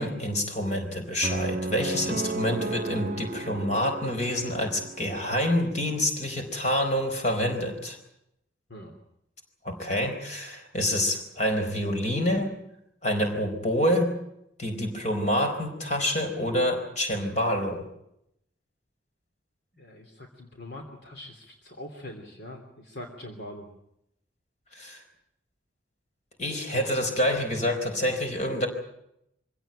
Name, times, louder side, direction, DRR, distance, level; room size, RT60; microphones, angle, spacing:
voice 1, 0.0-8.0 9.6-12.5 13.0-14.1 14.6-17.8 24.7-25.0 26.4-28.7, equal, 40° left, 5 dB, 4.5 m, -27 dB
sound 1, 1.2-5.4, right 3 dB, 40° right, 0.8 m, -34 dB
voice 2, 19.8-23.6, left 1 dB, 60° left, 3 dB, 3.1 m, -43 dB
25.0 x 17.0 x 9.0 m, 0.79 s
head